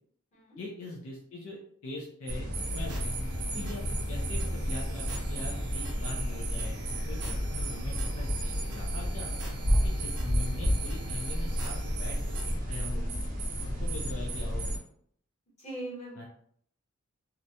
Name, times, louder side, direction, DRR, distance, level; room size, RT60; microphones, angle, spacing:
voice 1, 0.6-2.4 2.7-3.1 3.5-6.8 7.1-9.3 9.8-12.4 12.7-13.0 13.8-14.7 16.2-16.3, left 2 dB, 70° left, -2 dB, 0.5 m, -42 dB
sound 1, 2.3-14.8, equal, 35° right, 0.5 m, -31 dB
sound 2, 2.6-12.6, right 2 dB, 85° right, 0.6 m, -46 dB
Bowed string instrument, 2.8-7.3, equal, 5° left, 1.0 m, -55 dB
voice 2, 15.6-16.3, right 1 dB, 30° left, -8 dB, 1.2 m, -41 dB
2.5 x 2.1 x 2.7 m, 0.65 s
head